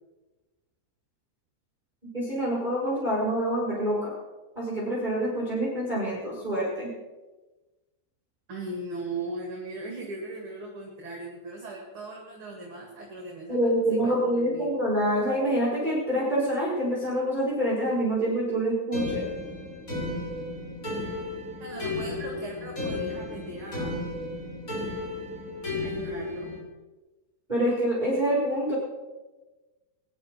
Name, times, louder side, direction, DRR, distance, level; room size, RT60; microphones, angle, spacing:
voice 1, 2.1-4.1 4.5-6.9 13.5-19.2 27.5-28.7, right 1 dB, 10° right, -7 dB, 4.5 m, -26 dB
voice 2, 8.5-13.6 13.9-14.7 21.6-24.0 25.8-26.6, right 2 dB, 40° right, 0 dB, 2.9 m, -38 dB
sound 1, 18.9-26.6, left 2 dB, 25° left, 3.5 m, -34 dB
20.5 x 11.5 x 4.6 m, 1.1 s
omnidirectional pair, 3.9 m